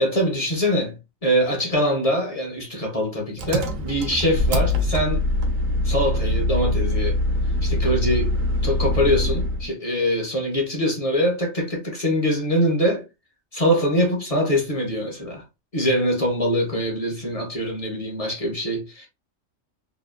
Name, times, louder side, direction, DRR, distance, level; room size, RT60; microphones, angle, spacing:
voice 1, 0.0-5.2 5.8-7.2 7.6-8.4 8.6-13.0 13.5-15.4 15.7-19.1, equal, 35° left, 0.6 m, -23 dB
Engine, 3.4-9.7, left 1 dB, 85° right, 1.1 m, -23 dB
2.9 x 2.3 x 2.3 m
omnidirectional pair, 1.3 m